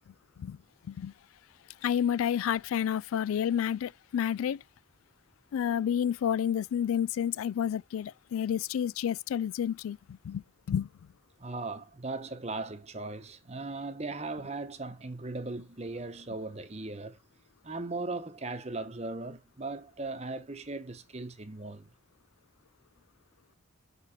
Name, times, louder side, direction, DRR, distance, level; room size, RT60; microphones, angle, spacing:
voice 1, 1.8-4.6 5.5-10.9, left 9 dB, 90° left, 0.3 m, -30 dB
voice 2, 11.4-17.2 17.6-21.9, right 3 dB, 30° right, 0.9 m, -38 dB
6.7 x 4.9 x 4.1 m
head